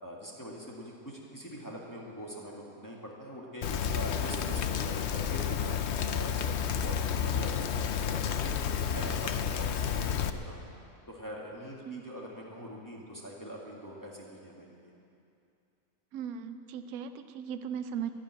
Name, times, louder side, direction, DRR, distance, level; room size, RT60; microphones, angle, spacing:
voice 1, 0.0-8.5 8.9-10.7 11.1-14.9, equal, 10° left, -4 dB, 2.0 m, -43 dB
Rain, 3.6-10.3, left 7 dB, 60° left, 0.8 m, -31 dB
voice 2, 16.1-18.1, right 8 dB, 75° right, 9 dB, 1.1 m, -37 dB
12.0 x 11.0 x 9.4 m, 2.6 s
omnidirectional pair, 1.6 m